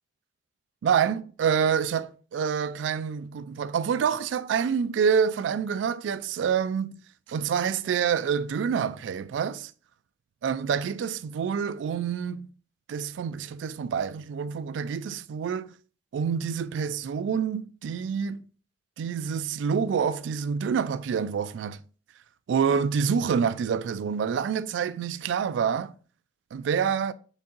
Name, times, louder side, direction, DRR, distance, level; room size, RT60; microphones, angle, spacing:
voice 1, 0.8-7.0 7.3-9.7 10.4-12.5 12.9-15.7 16.1-18.4 19.0-21.8 22.5-25.9 26.5-27.1, right 7 dB, 90° right, 0.3 m, -27 dB
4.5 x 3.7 x 2.9 m
head